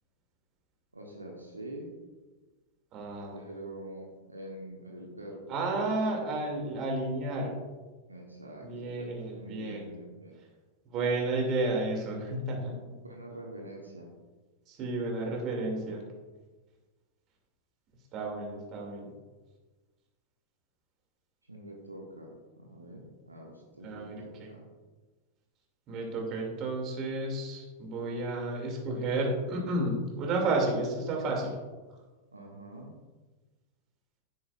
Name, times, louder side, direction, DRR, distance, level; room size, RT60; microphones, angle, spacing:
voice 1, 0.9-1.9 3.3-5.6 8.1-10.3 12.6-14.1 21.5-24.7 32.3-32.9, right 1 dB, 80° right, 0 dB, 1.3 m, -45 dB
voice 2, 2.9-3.4 5.5-7.5 8.6-9.8 10.9-12.7 14.7-16.0 18.1-19.1 23.8-24.5 25.9-31.5, right 2 dB, 35° right, 0 dB, 2.6 m, -32 dB
11.0 x 9.3 x 2.6 m, 1.3 s
figure-of-eight pair, 90°, 0 cm